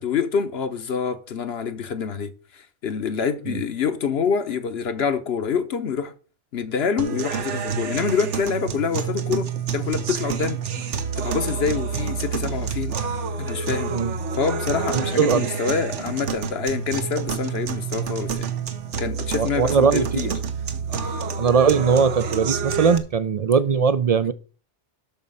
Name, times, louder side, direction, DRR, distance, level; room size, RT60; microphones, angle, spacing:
voice 1, 0.0-6.1 6.5-9.5 9.7-10.6 11.2-13.0 13.4-13.9 14.4-18.5 19.0-20.3, left 6 dB, 65° left, 1.1 m, -26 dB
sound 1, 7.0-23.0, right 6 dB, 85° right, 1.3 m, -28 dB
voice 2, 14.9-15.5 19.4-20.4 21.4-24.3, right 6 dB, 60° right, 0.4 m, -20 dB
12.0 x 4.2 x 5.4 m
omnidirectional pair, 1.2 m